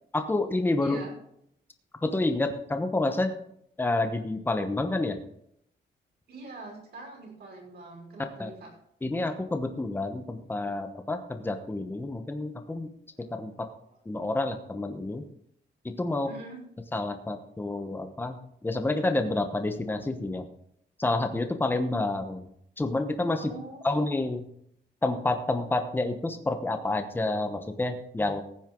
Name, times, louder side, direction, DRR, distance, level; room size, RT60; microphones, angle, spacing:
voice 1, 0.1-1.0 2.0-3.3 3.8-5.2 8.4-8.5 9.0-12.9 13.3-13.7 14.1-15.2 15.8-16.3 16.9-18.4 18.6-20.5 21.0-22.4 22.8-23.5 23.8-24.5 25.0-28.4, left 2 dB, 10° left, 6 dB, 1.0 m, -29 dB
voice 2, 0.8-1.1 6.3-8.7 13.9-14.0 16.2-16.6 23.3-24.0, right 2 dB, 60° right, -1 dB, 5.5 m, -44 dB
15.5 x 9.1 x 3.8 m, 0.71 s
wide cardioid pair, 165°, 19 cm